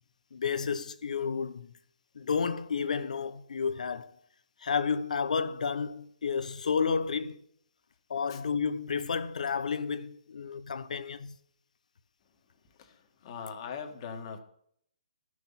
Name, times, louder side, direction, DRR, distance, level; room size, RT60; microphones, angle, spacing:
voice 1, 0.3-1.7 2.1-4.2 4.6-7.4 8.1-11.4, left 6 dB, 70° left, 0.9 m, -31 dB
voice 2, 12.6-14.4, left 6 dB, 40° left, 1.9 m, -41 dB
13.0 x 6.4 x 5.7 m
hypercardioid pair, 145°, 4 cm